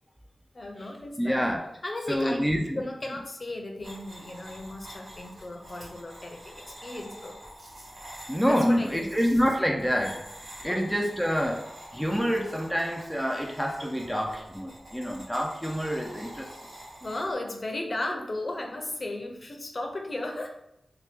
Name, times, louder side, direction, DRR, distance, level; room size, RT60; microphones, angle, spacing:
voice 1, 0.5-1.5 1.8-2.5 2.8-7.4 8.4-9.1 10.6-10.9 17.0-20.5, left 2 dB, 45° left, 2 dB, 0.6 m, -35 dB
voice 2, 1.2-1.6 2.1-2.8 8.3-10.2 10.6-11.6 11.9-16.5, equal, ahead, 2 dB, 0.3 m, -27 dB
sound 1, 3.8-17.3, right 1 dB, 70° right, 1.1 m, -47 dB
2.8 x 2.1 x 3.4 m, 0.84 s
wide cardioid pair, 70°, 0 cm